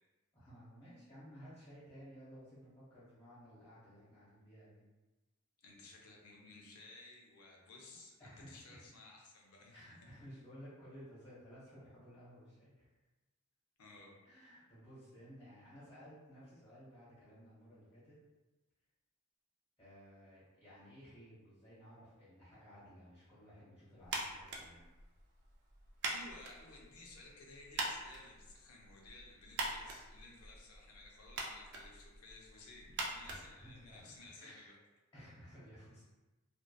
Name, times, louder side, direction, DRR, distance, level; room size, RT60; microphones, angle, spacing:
voice 1, 0.3-4.8 7.9-8.8 9.7-12.9 14.2-18.2 19.8-24.9 33.2-34.1 34.4-34.7 35.1-36.1, equal, 15° left, -11 dB, 1.0 m, -56 dB
voice 2, 5.6-9.9 13.8-14.1 26.1-34.8, left 2 dB, 85° left, -1 dB, 0.6 m, -56 dB
sound 1, 24.0-34.2, right 2 dB, 55° right, 0.4 m, -45 dB
2.6 x 2.2 x 2.2 m, 1.1 s
head